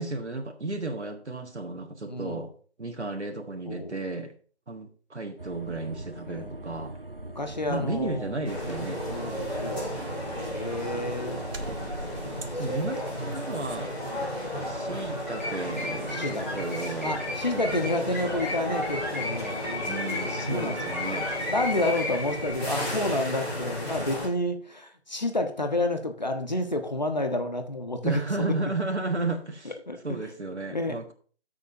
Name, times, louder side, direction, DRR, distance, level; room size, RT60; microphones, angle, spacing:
voice 1, 0.0-2.5 2.8-4.3 4.7-7.0 7.7-9.0 12.6-13.9 14.6-17.2 17.5-17.9 19.9-21.3 28.0-29.7 30.0-31.1, right 2 dB, 85° right, 4 dB, 1.6 m, -33 dB
voice 2, 2.1-2.4 3.7-4.0 6.3-6.5 7.3-8.3 9.1-10.0 10.5-11.4 12.9-13.1 14.1-14.2 16.1-16.6 17.0-20.0 20.5-21.2 21.5-28.1 28.4-28.5 29.6-30.2 30.7-31.0, left 2 dB, 40° left, 6 dB, 1.1 m, -30 dB
sound 1, 5.4-13.8, right 1 dB, 55° right, 1.2 m, -41 dB
sound 2, 8.4-24.3, left 1 dB, 65° left, 4.4 m, -33 dB
sound 3, 15.3-22.5, left 1 dB, 10° left, 1.8 m, -36 dB
13.5 x 6.9 x 2.7 m, 0.41 s
figure-of-eight pair, 175°, 34 cm